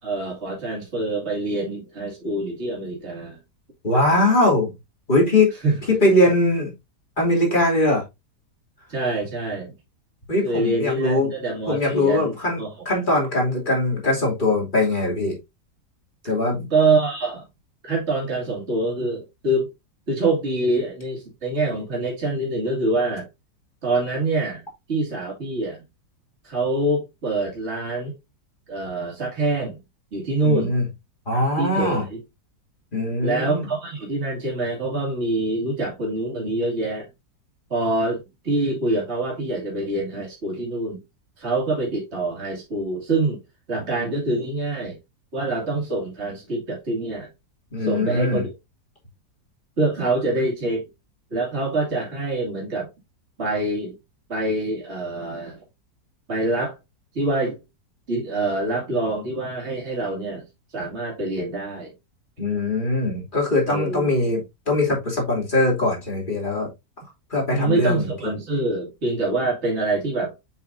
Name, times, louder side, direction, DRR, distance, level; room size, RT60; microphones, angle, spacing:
voice 1, 0.0-3.4 5.6-5.8 8.9-9.7 10.4-12.7 16.7-17.4 17.8-19.7 20.1-23.3 23.8-24.6 24.9-25.8 26.4-28.1 28.7-29.8 30.1-30.7 31.3-32.2 33.2-37.1 37.7-41.0 41.4-43.4 43.7-45.0 45.3-47.3 47.8-48.5 49.8-50.9 51.3-52.9 53.4-54.0 54.3-55.6 56.3-56.8 57.1-57.6 58.1-60.5 60.7-61.9 63.7-64.1 67.5-70.3, right 2 dB, 40° right, 2.7 m, -25 dB
voice 2, 3.8-4.7 5.1-5.5 6.0-6.7 7.2-8.0 10.3-11.3 11.7-15.4 16.2-16.7 30.4-30.8 31.3-32.0 32.9-33.7 47.7-48.4 62.4-66.7 67.3-68.1, left 2 dB, 30° left, 3.1 m, -21 dB
7.5 x 5.7 x 2.6 m
omnidirectional pair, 1.7 m